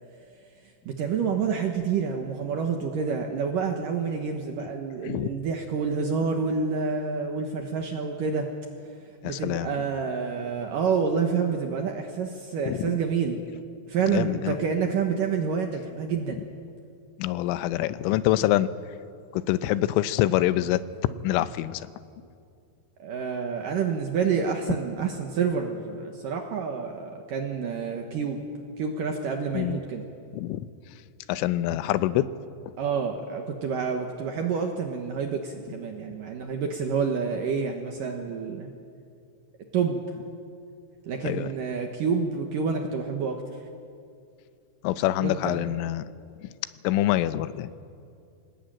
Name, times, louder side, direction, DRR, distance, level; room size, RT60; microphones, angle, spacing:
voice 1, 0.9-8.5 9.2-13.4 13.9-16.4 23.0-28.4 28.8-30.1 32.8-38.7 39.7-40.0 41.1-43.4 45.2-45.7, right 5 dB, 65° right, 3 dB, 2.2 m, -28 dB
voice 2, 9.2-9.7 12.7-12.9 14.1-14.6 17.2-18.7 19.3-20.8 21.2-21.8 29.5-29.8 30.3-30.7 31.3-32.3 41.2-41.5 44.8-46.1 46.4-46.5 46.8-47.7, left 14 dB, 90° left, 14 dB, 3.3 m, -25 dB
25.0 x 19.5 x 8.9 m, 2.4 s
omnidirectional pair, 5.5 m